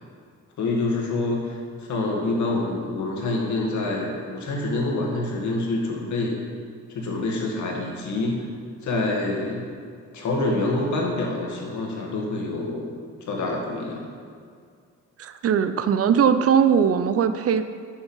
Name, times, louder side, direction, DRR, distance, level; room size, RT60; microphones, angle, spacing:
voice 1, 0.6-6.4 6.9-8.5 8.8-9.6 10.1-12.9 13.2-14.0, left 2 dB, 70° left, -1 dB, 1.9 m, -26 dB
voice 2, 15.2-17.6, right 7 dB, 50° right, 11 dB, 0.5 m, -20 dB
7.3 x 7.2 x 5.6 m, 2.2 s
cardioid pair, 90°, 30 cm